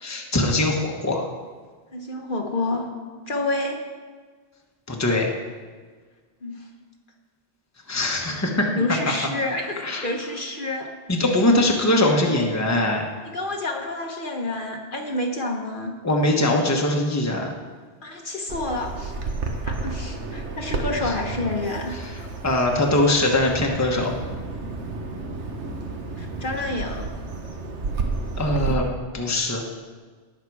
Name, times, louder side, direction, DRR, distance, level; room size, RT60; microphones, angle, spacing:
voice 1, 0.0-1.3 4.9-5.3 7.9-8.7 9.8-10.0 11.1-13.0 16.0-17.5 21.0-21.1 21.9-22.1 22.4-24.1 28.4-28.9 29.1-29.6, left 1 dB, 15° left, 0 dB, 1.2 m, -22 dB
voice 2, 1.9-2.9 3.3-3.8 6.4-6.7 8.3-8.4 8.7-10.9 13.2-16.0 18.0-19.1 19.6-22.0 26.2-27.1, left 2 dB, 50° left, 1 dB, 1.3 m, -29 dB
Bird vocalization bird call bird song, 18.5-28.7, right 3 dB, 90° right, 1.5 m, -31 dB
18.0 x 6.6 x 4.8 m, 1.5 s
omnidirectional pair, 1.1 m